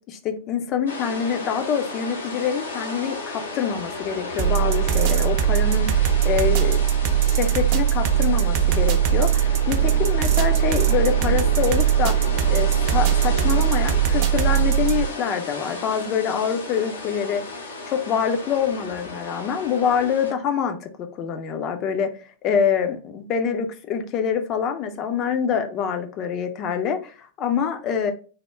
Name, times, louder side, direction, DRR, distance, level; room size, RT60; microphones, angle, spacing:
voice 1, 0.1-6.0 6.2-6.8 7.2-12.2 12.5-17.4 17.9-20.9 21.2-22.1 22.4-28.1, left 7 dB, 35° left, 7 dB, 0.5 m, -25 dB
sound 1, 0.9-20.3, left 3 dB, 75° left, 0.8 m, -34 dB
sound 2, 4.4-15.1, right 10 dB, 45° right, 0.4 m, -20 dB
3.5 x 2.1 x 3.1 m, 0.38 s
figure-of-eight pair, 95°, 0 cm